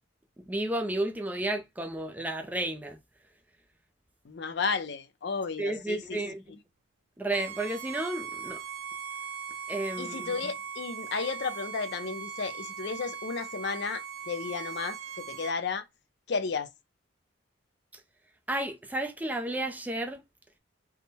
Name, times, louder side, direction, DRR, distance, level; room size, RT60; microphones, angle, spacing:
voice 1, 0.5-3.0 5.6-6.4 7.2-8.6 9.7-10.4 18.5-20.2, right 1 dB, 10° right, 0.4 m, -32 dB
voice 2, 4.2-6.2 10.0-15.8 16.3-16.7, left 4 dB, 60° left, 0.5 m, -33 dB
Bowed string instrument, 7.3-15.6, right 7 dB, 80° right, 0.4 m, -40 dB
3.6 x 2.0 x 4.0 m
head